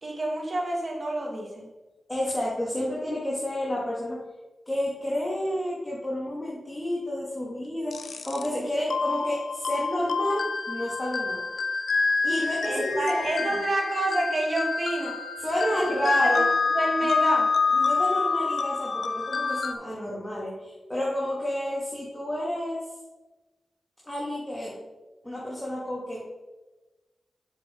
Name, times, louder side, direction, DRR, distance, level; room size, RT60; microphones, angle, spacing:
voice 1, 0.0-1.7 12.6-15.1 15.6-15.9 16.2-16.5 16.7-17.5, right 1 dB, 50° right, 0 dB, 2.2 m, -29 dB
voice 2, 2.1-4.3 4.7-11.5 12.2-13.6 15.4-16.5 17.7-22.9 24.0-24.8 25.2-26.2, left 1 dB, 15° left, -5 dB, 2.4 m, -30 dB
sound 1, 7.9-8.5 8.9-19.7, left 4 dB, 70° left, 0.6 m, -27 dB
8.0 x 6.8 x 3.8 m, 1.1 s
cardioid pair, 45°, 0 cm